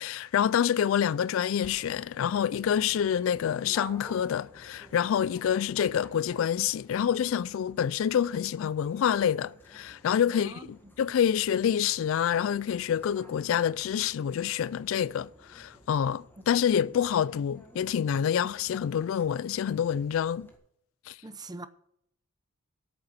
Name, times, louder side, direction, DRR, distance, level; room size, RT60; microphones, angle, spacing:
voice 1, 0.0-20.5 21.1-21.2, left 8 dB, 65° left, 0.3 m, -27 dB
Dog, 1.6-20.6, equal, 10° left, 1.5 m, -53 dB
voice 2, 10.3-10.7 13.5-13.6 21.2-21.7, right 2 dB, 20° right, 0.6 m, -42 dB
8.9 x 6.9 x 8.1 m
head